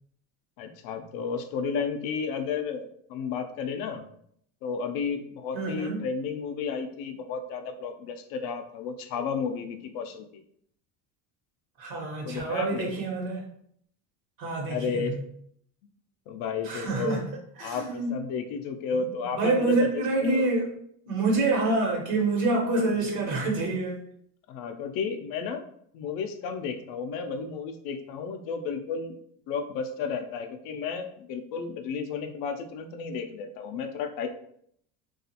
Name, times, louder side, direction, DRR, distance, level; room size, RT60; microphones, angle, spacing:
voice 1, 0.6-4.0 4.6-10.3 12.2-12.9 14.7-15.2 16.3-17.2 17.6-20.5 24.5-25.6 25.9-29.2 29.5-34.3, left 5 dB, 65° left, 6 dB, 0.5 m, -32 dB
voice 2, 5.5-6.0 11.8-13.4 14.4-15.1 16.6-17.2 17.6-18.2 18.9-19.0 19.3-20.7 21.1-24.0, right 2 dB, 65° right, 0 dB, 1.0 m, -27 dB
2.4 x 2.4 x 2.7 m, 0.67 s
supercardioid pair, 110°, 37 cm